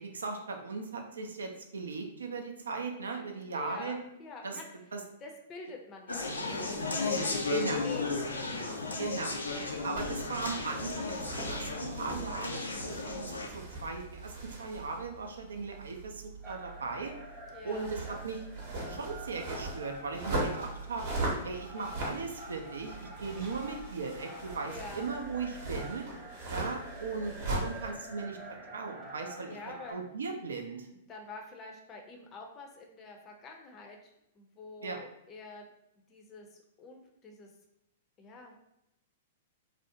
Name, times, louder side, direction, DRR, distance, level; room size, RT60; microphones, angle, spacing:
voice 1, 0.0-4.0 4.4-4.6 4.9-5.0 7.5-7.8 9.0-9.4 9.8-17.1 17.6-18.4 18.9-21.0 21.4-26.0 26.5-28.4 28.7-29.6 29.9-30.9 34.8-35.0, right 4 dB, 75° right, 4 dB, 0.4 m, -38 dB
voice 2, 3.5-4.7 5.2-7.5 7.8-9.0 9.5-10.0 17.5-17.9 24.7-25.1 29.5-30.0 31.1-35.7 36.1-37.5 38.2-38.6, left 3 dB, 25° left, 2 dB, 0.5 m, -47 dB
Conversation, 6.1-13.5, left 3 dB, 80° left, 0.4 m, -35 dB
sound 1, 9.9-27.9, right 2 dB, 55° right, 0.8 m, -40 dB
sound 2, 16.4-29.9, right 1 dB, 10° right, 0.7 m, -48 dB
2.4 x 2.0 x 2.7 m, 0.83 s
figure-of-eight pair, 105°, 0 cm